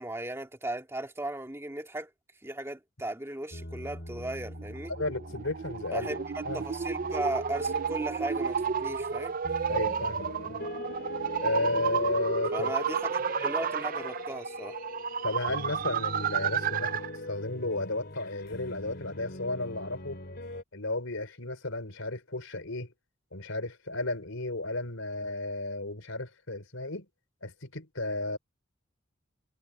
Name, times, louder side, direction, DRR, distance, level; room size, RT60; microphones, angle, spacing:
voice 1, 0.0-2.1 2.4-4.9 5.9-6.2 6.5-9.4 12.5-14.8, right 1 dB, 15° right, 2.3 m, -36 dB
sound 1, 3.5-20.6, left 1 dB, 50° left, 4.0 m, -42 dB
sound 2, 4.5-17.2, right 7 dB, 40° right, 0.4 m, -32 dB
voice 2, 5.0-6.6 9.7-10.7 11.4-12.7 15.2-20.2 20.7-22.9 23.3-27.1 27.4-28.4, left 2 dB, 75° left, 4.2 m, -33 dB
head